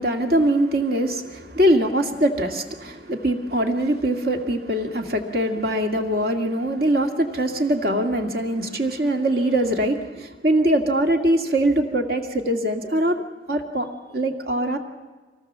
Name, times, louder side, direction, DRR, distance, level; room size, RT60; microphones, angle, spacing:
voice 1, 0.0-13.2 13.5-14.8, right 1 dB, 60° right, 4 dB, 2.1 m, -22 dB
24.5 x 18.0 x 7.4 m, 1.3 s
head